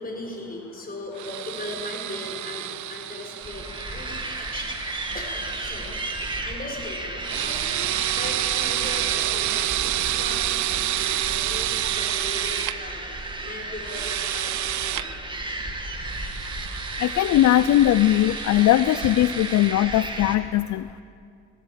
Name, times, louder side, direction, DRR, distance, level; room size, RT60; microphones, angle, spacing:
voice 1, 0.0-15.1, left 2 dB, 30° left, 1 dB, 6.2 m, -38 dB
sound 1, 1.2-6.4 7.2-12.7 13.8-15.0 16.1-19.7, right 14 dB, 70° right, 0.6 m, -29 dB
sound 2, 3.4-20.4, right 2 dB, 15° right, 2.3 m, -34 dB
voice 2, 17.0-21.0, left 13 dB, 70° left, 14 dB, 0.5 m, -20 dB
18.5 x 16.5 x 9.2 m, 2.5 s
cardioid pair, 90°, 30 cm